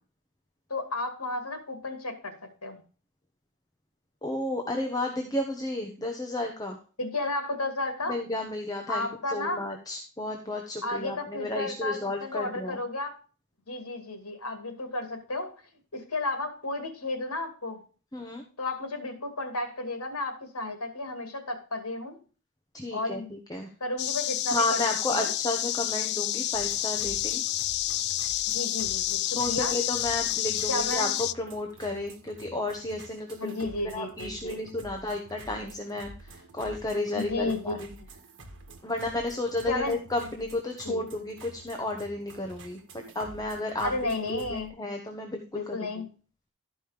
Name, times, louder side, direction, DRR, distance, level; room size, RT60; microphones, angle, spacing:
voice 1, 0.7-2.3 2.6-2.8 7.0-8.2 8.9-9.6 10.8-13.1 13.7-15.5 15.9-17.8 18.6-22.2 22.9-23.3 23.8-24.8 25.1-25.3 28.5-29.8 30.7-31.1 33.4-34.6 37.1-37.7 39.7-39.9 40.8-41.0 43.8-44.7 45.5-46.1, left 2 dB, 75° left, 7 dB, 2.4 m, -32 dB
voice 2, 4.2-6.8 8.1-12.8 18.1-18.4 22.7-23.7 24.5-27.4 29.3-37.8 38.8-43.9 44.3-45.9, left 2 dB, 15° left, 2 dB, 1.2 m, -32 dB
sound 1, 24.0-31.3, left 13 dB, 50° left, 0.4 m, -29 dB
sound 2, 26.5-44.7, right 2 dB, 60° right, 1.7 m, -49 dB
13.0 x 5.4 x 5.0 m, 0.37 s
head